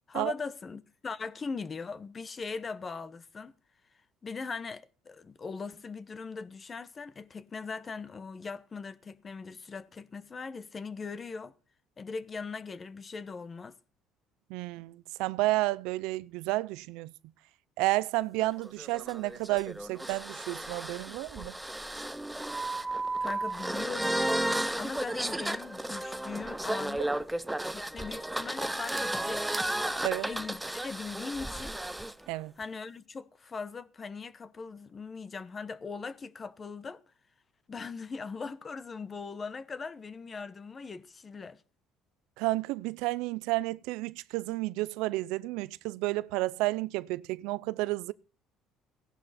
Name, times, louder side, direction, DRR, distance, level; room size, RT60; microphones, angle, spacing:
voice 1, 0.1-3.5 4.2-11.5 12.0-13.7 23.2-24.2 24.8-27.1 27.7-29.5 30.2-31.8 32.6-37.0 37.7-41.6, left 4 dB, 25° left, 1.0 m, -40 dB
voice 2, 14.5-17.1 17.8-21.5 30.0-30.3 32.3-32.5 42.4-48.1, right 20 dB, 90° right, 0.5 m, -31 dB
sound 1, 18.4-32.1, right 1 dB, 5° right, 0.7 m, -33 dB
16.0 x 11.5 x 4.2 m
cardioid pair, 130°, 0 cm